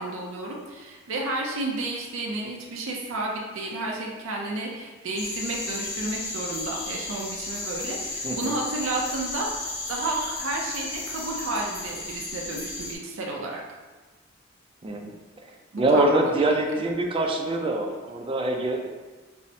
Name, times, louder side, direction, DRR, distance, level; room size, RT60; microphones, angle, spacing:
voice 1, 0.0-13.6 15.7-16.5, right 2 dB, 80° right, -1 dB, 0.5 m, -31 dB
sound 1, 5.2-12.9, left 2 dB, 85° left, 0.8 m, -34 dB
voice 2, 8.2-8.5 14.8-15.1 15.8-18.9, right 2 dB, 25° right, 2 dB, 0.4 m, -24 dB
5.5 x 2.1 x 2.6 m, 1.3 s
head